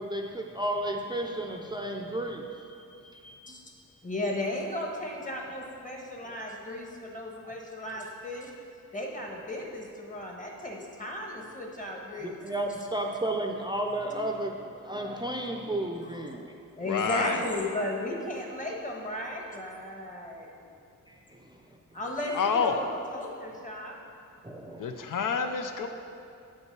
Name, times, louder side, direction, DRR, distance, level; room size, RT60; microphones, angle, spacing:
voice 1, 0.0-3.5 6.2-6.4 7.4-7.5 12.2-16.5 21.1-21.8 24.4-24.9, right 1 dB, 15° right, 2 dB, 0.5 m, -33 dB
voice 2, 4.0-8.5 8.9-12.4 16.8-20.5 21.9-22.8 23.1-23.9, left 1 dB, 25° left, 0 dB, 1.3 m, -35 dB
voice 3, 16.8-17.4 22.3-22.9 24.8-25.9, left 5 dB, 75° left, 6 dB, 0.5 m, -28 dB
8.8 x 5.4 x 4.6 m, 2.6 s
wide cardioid pair, 95°, 32 cm